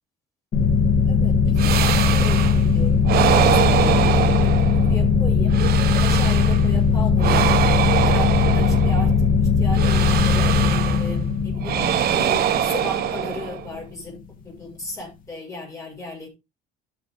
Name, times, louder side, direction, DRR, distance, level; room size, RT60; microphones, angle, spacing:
sound 1, 0.5-13.8, left 5 dB, 55° left, 3.0 m, -19 dB
voice 1, 1.1-5.6 6.0-7.5 7.9-9.1 9.4-11.8 12.1-16.3, left 2 dB, 20° left, -1 dB, 7.0 m, -35 dB
sound 2, 1.6-2.7 3.0-5.0 5.5-6.7 7.2-9.2 9.7-11.1 11.6-13.7, right 10 dB, 65° right, 1.4 m, -23 dB
13.0 x 6.8 x 3.8 m, 0.25 s
cardioid pair, 110°, 17 cm